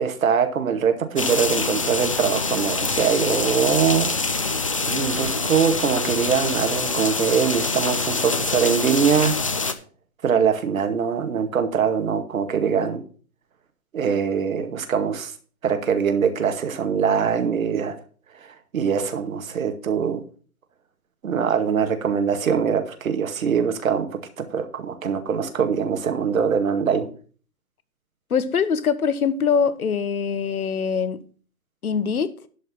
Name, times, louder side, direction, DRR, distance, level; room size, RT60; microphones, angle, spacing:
voice 1, 0.0-4.1 4.9-9.3 10.2-13.0 13.9-15.3 15.6-18.0 18.7-20.2 21.2-24.1 24.4-27.1, right 7 dB, 60° right, 2.0 m, -22 dB
sound 1, 1.2-9.7, left 3 dB, 25° left, 0.4 m, -25 dB
voice 2, 28.3-31.2 31.8-32.3, left 6 dB, 70° left, 1.2 m, -23 dB
11.5 x 5.3 x 6.0 m
figure-of-eight pair, 135°, 45 cm